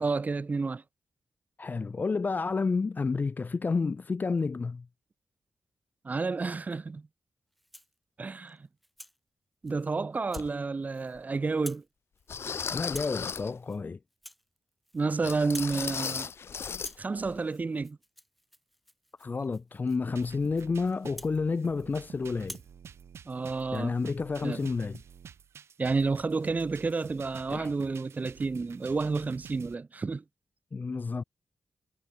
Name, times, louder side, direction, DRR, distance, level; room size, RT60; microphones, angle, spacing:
voice 1, 0.0-0.8 6.0-7.0 8.2-8.6 9.6-11.8 14.9-16.3 17.0-18.0 23.3-23.9 24.4-24.7 25.8-30.2, right 4 dB, 35° right, 0.4 m, -30 dB
voice 2, 1.6-4.9 12.7-14.0 19.2-22.6 23.7-25.0 27.5-27.7 30.7-31.2, left 4 dB, 40° left, 0.4 m, -30 dB
Rattle (instrument), 7.5-8.0 8.5-9.2 9.7-9.9 10.3-10.5 10.8-11.2 11.5-11.9 12.2-12.5 12.9-13.2 13.6-13.8 14.1-15.1 15.4-15.8 16.1-16.4 16.7-22.0 22.4-22.7, equal, ahead, 7.1 m, -49 dB
sound 1, 10.4-10.5 11.2-11.3 12.3-13.6 15.2-17.0 17.2-17.4 17.8-17.9, left 6 dB, 65° left, 0.9 m, -36 dB
sound 2, 20.1-29.7, right 7 dB, 80° right, 5.6 m, -50 dB
supercardioid pair, 45°, 4 cm